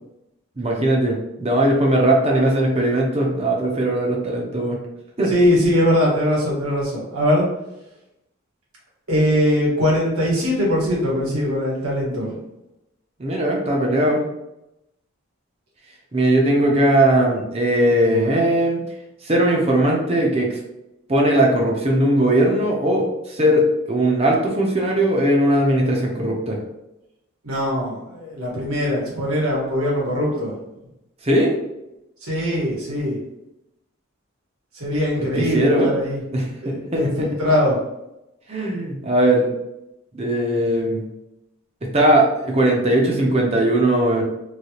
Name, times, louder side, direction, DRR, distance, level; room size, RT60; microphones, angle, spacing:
voice 1, 0.6-4.8 5.2-5.3 13.2-14.2 16.1-18.8 19.2-20.6 21.1-26.6 31.2-31.6 35.4-35.9 36.3-37.3 38.5-39.5 40.1-41.0 41.9-44.2, right 1 dB, 30° right, -1 dB, 0.6 m, -19 dB
voice 2, 5.3-7.5 9.1-12.4 27.4-30.5 32.2-33.2 34.7-36.2 36.6-37.8, equal, 90° right, -5 dB, 1.5 m, -21 dB
3.2 x 2.9 x 2.8 m, 0.90 s
head